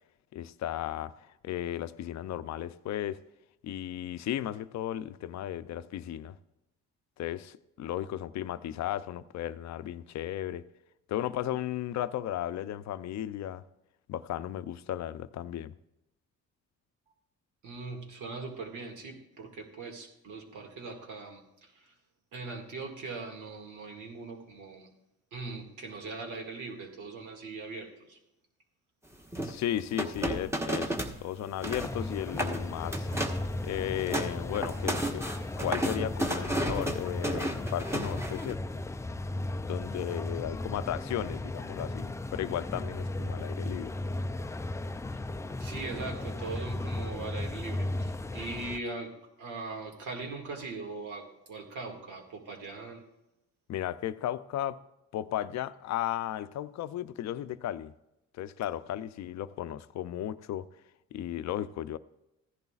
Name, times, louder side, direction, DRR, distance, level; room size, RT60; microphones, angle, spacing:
voice 1, 0.3-3.2 3.6-6.3 7.2-10.6 11.1-13.6 14.1-15.7 29.4-31.0 31.2-33.1 33.6-35.2 35.6-38.6 39.6-43.9 53.7-54.8 55.1-57.9 58.4-60.7 61.1-62.0, left 12 dB, 65° left, 13 dB, 0.5 m, -35 dB
voice 2, 17.6-21.4 22.3-24.9 25.3-28.2 45.6-49.1 49.4-53.0, right 3 dB, 75° right, 3 dB, 2.1 m, -40 dB
sound 1, 29.3-31.2 31.5-31.9 32.3-32.6 32.9-33.5 33.8-38.5, right 1 dB, 10° right, 1.2 m, -32 dB
sound 2, 31.6-48.8, left 2 dB, 10° left, 0.3 m, -36 dB
15.0 x 11.0 x 2.4 m, 0.89 s
cardioid pair, 90°, 30 cm